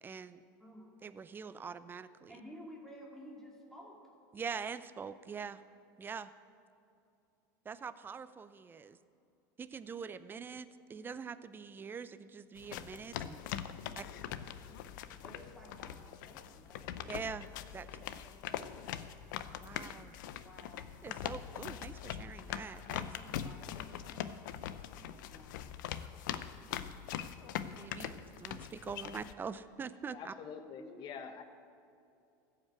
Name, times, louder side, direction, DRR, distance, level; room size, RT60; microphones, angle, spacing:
voice 1, 0.0-0.4 1.0-2.4 4.3-5.6 6.0-6.3 7.6-9.0 9.6-13.5 14.0-14.1 17.0-17.9 19.6-20.1 21.0-23.1 27.7-30.3, right 6 dB, 20° right, 14 dB, 0.5 m, -44 dB
voice 2, 0.6-0.9 2.3-4.0 13.5-17.0 17.8-18.8 20.4-21.0 23.1-24.4 25.3-25.8 30.7-31.0, equal, 5° left, -2 dB, 2.4 m, -54 dB
sound 1, 12.6-29.3, left 10 dB, 75° left, 0.6 m, -42 dB
voice 3, 30.1-31.4, left 7 dB, 45° left, 7 dB, 1.2 m, -46 dB
15.0 x 5.8 x 8.1 m, 2.6 s
supercardioid pair, 115°, 10 cm